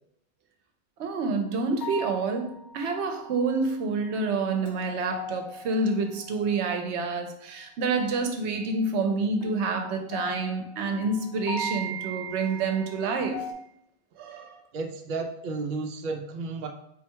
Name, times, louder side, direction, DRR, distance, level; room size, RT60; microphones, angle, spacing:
sound 1, 1.0-1.4 1.8-3.6 4.1-7.0 9.4-13.5, left 3 dB, 75° left, 0.8 m, -41 dB
voice 1, 1.0-13.5 14.2-14.6, right 3 dB, 80° right, 5 dB, 0.9 m, -28 dB
voice 2, 14.7-16.7, right 3 dB, 55° right, 4 dB, 0.6 m, -32 dB
3.8 x 2.2 x 4.5 m, 0.74 s
omnidirectional pair, 1.2 m